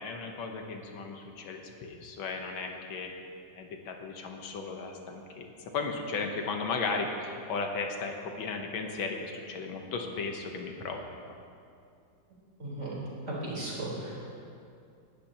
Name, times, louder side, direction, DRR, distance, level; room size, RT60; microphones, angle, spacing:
voice 1, 0.0-3.1 3.6-11.0, left 4 dB, 85° left, 3 dB, 1.8 m, -35 dB
voice 2, 12.6-12.9 13.3-14.3, right 1 dB, 35° right, -7 dB, 4.2 m, -36 dB
18.0 x 12.0 x 2.9 m, 2.4 s
omnidirectional pair, 2.2 m